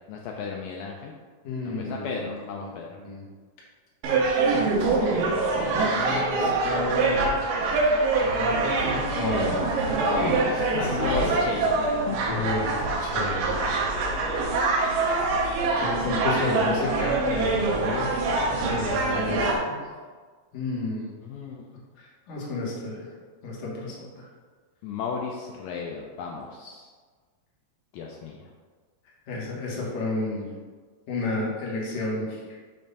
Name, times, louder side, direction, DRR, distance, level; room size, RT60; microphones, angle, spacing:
voice 1, 0.1-1.2 1.8-3.0 10.0-10.5 10.7-11.7 12.1-12.2 21.2-21.7 24.8-26.9 27.9-28.5, left 5 dB, 85° left, 0 dB, 1.9 m, -33 dB
voice 2, 1.4-3.3 5.1-7.3 8.2-9.6 10.0-11.5 12.3-12.7 13.0-13.6 14.4-14.6 15.8-18.1 18.7-19.9 20.5-21.1 22.0-23.1 23.4-24.3 29.3-30.5 31.1-32.4, left 2 dB, 60° left, -4 dB, 2.3 m, -32 dB
sound 1, 4.0-19.6, right 3 dB, 75° right, 2.3 m, -24 dB
7.1 x 2.6 x 5.4 m, 1.5 s
omnidirectional pair, 4.3 m